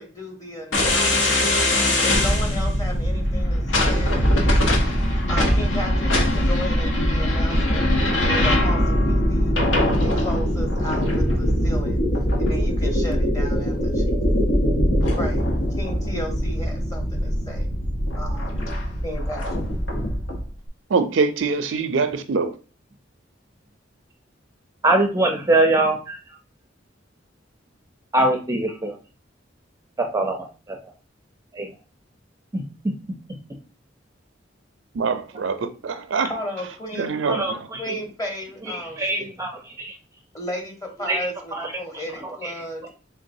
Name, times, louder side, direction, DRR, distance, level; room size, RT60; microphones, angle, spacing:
voice 1, 0.0-1.6 2.0-4.6 5.3-7.9 8.2-9.5 10.0-12.0 12.4-14.2 15.2-15.4 15.8-17.7 18.2-18.5 19.0-19.4 36.3-37.2 37.8-39.3 40.3-42.8, equal, 20° left, 1.1 m, -34 dB
sound 1, 0.7-20.4, left 1 dB, 75° left, 1.1 m, -21 dB
voice 2, 20.9-22.5 34.9-36.3 37.0-37.6, right 4 dB, 80° right, 0.5 m, -24 dB
voice 3, 24.8-26.4 28.1-29.0 30.0-30.8 31.5-31.7 32.5-32.6 37.3-38.0 38.7-39.9 41.0-41.7 42.2-42.5, right 2 dB, 15° right, 0.5 m, -23 dB
3.8 x 3.5 x 2.7 m
head